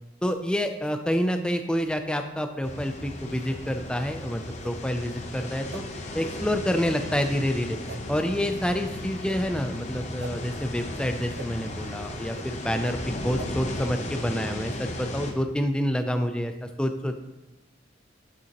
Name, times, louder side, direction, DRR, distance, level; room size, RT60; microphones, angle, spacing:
voice 1, 0.2-5.8 6.1-7.8 8.1-13.0 13.2-17.2, equal, 5° left, 6 dB, 0.4 m, -28 dB
sound 1, 2.6-15.3, left 1 dB, 35° left, 0.8 m, -35 dB
sound 2, 3.5-3.6 4.6-4.7 5.7-5.8 6.7-6.8 7.9-8.0 9.2-9.4 10.2-10.3 11.3-11.5 12.3-12.5 13.3-13.5, right 6 dB, 70° right, 0.3 m, -42 dB
7.9 x 6.6 x 2.9 m, 0.98 s
head